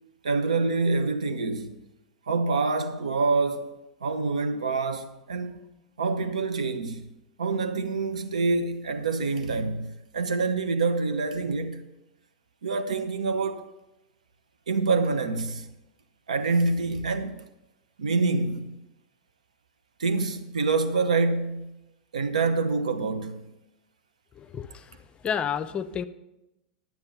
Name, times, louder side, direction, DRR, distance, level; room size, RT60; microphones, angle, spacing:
voice 1, 0.2-1.8 2.3-3.7 4.0-5.6 6.0-7.0 7.4-11.8 12.6-13.7 14.7-15.7 16.3-17.4 18.0-18.8 20.0-21.7 22.1-23.5, right 3 dB, 80° right, 0.9 m, -26 dB
voice 2, 24.4-24.9 25.2-26.0, left 7 dB, 25° left, 0.6 m, -30 dB
11.5 x 7.5 x 5.7 m
hypercardioid pair, 95°, 4 cm